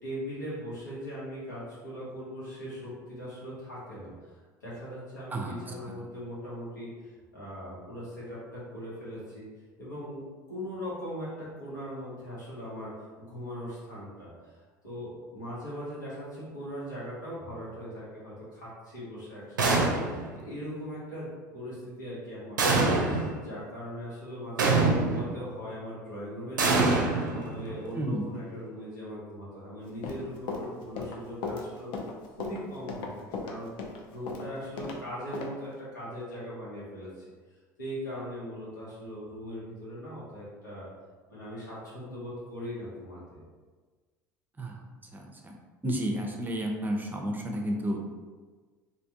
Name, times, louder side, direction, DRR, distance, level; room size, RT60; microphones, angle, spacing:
voice 1, 0.0-4.1 4.6-9.5 9.8-31.9 32.3-33.7 34.1-37.3 37.8-40.9 41.3-43.4, equal, 85° left, -8 dB, 1.2 m, -40 dB
sound 1, 19.6-20.3 22.6-23.4 24.6-25.4 26.6-27.8, right 3 dB, 85° right, 0.4 m, -25 dB
voice 2, 27.9-28.3 44.6-44.8 45.1-45.5 45.8-48.0, right 1 dB, 20° right, 1 dB, 0.6 m, -31 dB
Run, 29.9-35.0 35.3-35.5, left 4 dB, 55° left, 0.5 m, -36 dB
3.3 x 2.5 x 2.7 m, 1.4 s
hypercardioid pair, 70°, 10 cm